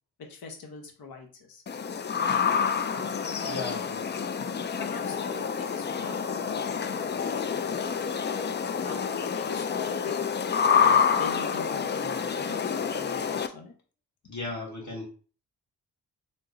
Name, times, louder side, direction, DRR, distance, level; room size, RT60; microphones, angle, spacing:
voice 1, 0.2-1.6 2.2-2.4 3.4-3.7 4.3-4.4 4.8-8.1 8.8-9.1 9.3-10.2 10.7-13.7, left 4 dB, 60° left, 1.0 m, -43 dB
sound 1, 1.7-13.5, left 6 dB, 30° left, 0.3 m, -28 dB
voice 2, 3.5-4.0 14.3-15.1, left 3 dB, 45° left, 1.8 m, -36 dB
3.6 x 2.0 x 3.7 m
cardioid pair, 50°, 40 cm